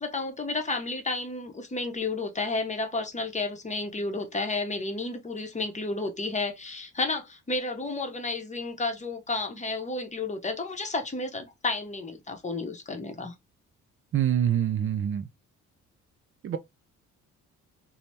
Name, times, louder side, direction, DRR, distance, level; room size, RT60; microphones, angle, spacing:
voice 1, 0.0-13.3, left 3 dB, 25° left, 0.7 m, -31 dB
voice 2, 14.1-15.3 16.4-16.6, right 10 dB, 45° right, 0.4 m, -25 dB
2.8 x 2.0 x 3.2 m
cardioid pair, 90°, 30 cm